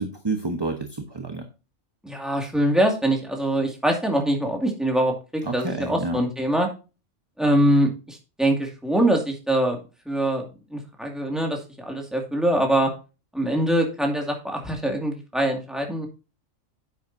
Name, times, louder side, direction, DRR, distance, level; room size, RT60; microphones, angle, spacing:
voice 1, 0.0-1.4 5.4-6.2, right 3 dB, 20° right, 5 dB, 1.0 m, -29 dB
voice 2, 2.0-6.7 7.4-9.8 10.1-10.5 10.7-12.9 13.3-16.1, right 1 dB, ahead, 1 dB, 2.1 m, -23 dB
10.0 x 7.9 x 2.7 m, 0.31 s
omnidirectional pair, 1.3 m